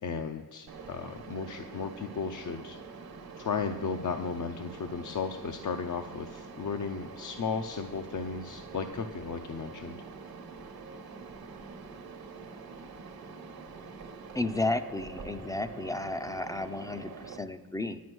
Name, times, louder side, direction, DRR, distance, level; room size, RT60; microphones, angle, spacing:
voice 1, 0.0-2.8 3.4-10.0, left 5 dB, 55° left, 6 dB, 0.6 m, -35 dB
Mechanisms, 0.7-17.4, right 4 dB, 70° right, 1.1 m, -45 dB
voice 2, 14.3-18.0, left 2 dB, 10° left, 11 dB, 0.4 m, -33 dB
10.0 x 9.4 x 6.1 m, 1.5 s
wide cardioid pair, 175°, 37 cm